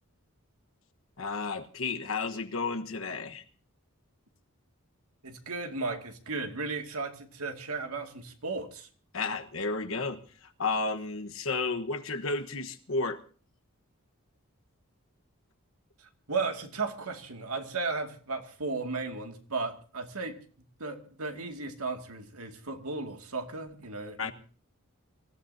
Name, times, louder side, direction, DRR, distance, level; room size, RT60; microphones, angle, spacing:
voice 1, 1.2-3.4 9.1-13.2 24.2-24.3, left 3 dB, 60° left, 1.3 m, -32 dB
voice 2, 5.2-8.9 16.0-20.4 20.8-24.3, right 3 dB, 80° right, 2.2 m, -35 dB
26.0 x 16.0 x 2.8 m
head